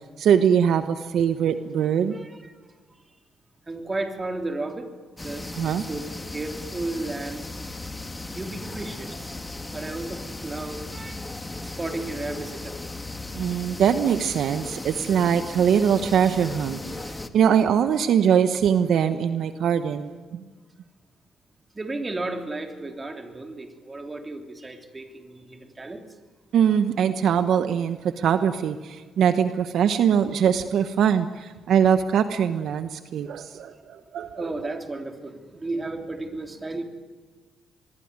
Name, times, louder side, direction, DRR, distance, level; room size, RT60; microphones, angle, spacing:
voice 1, 0.2-2.2 5.5-5.8 13.3-20.4 26.5-34.5, right 8 dB, 70° right, 10 dB, 1.1 m, -22 dB
voice 2, 2.1-2.5 3.7-7.5 8.3-11.2 11.6-12.8 21.7-26.0 33.4-33.5 34.4-36.8, right 2 dB, 25° right, 5 dB, 3.2 m, -34 dB
sound 1, 5.2-17.3, left 2 dB, 15° left, 1.9 m, -36 dB
25.0 x 22.0 x 9.6 m, 1.4 s
cardioid pair, 90°, 0 cm